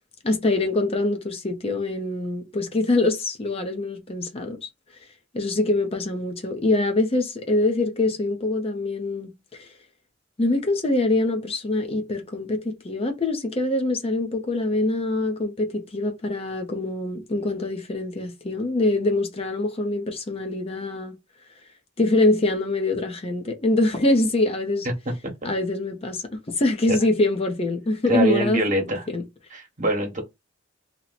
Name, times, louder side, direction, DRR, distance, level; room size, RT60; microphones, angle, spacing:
voice 1, 0.2-4.6 5.3-9.7 10.4-21.1 22.0-24.9 25.4-28.6 28.9-29.2, left 2 dB, 30° left, 0.6 m, -24 dB
voice 2, 28.1-29.0 29.5-30.2, right 1 dB, 45° right, 1.1 m, -23 dB
2.8 x 2.0 x 4.0 m
head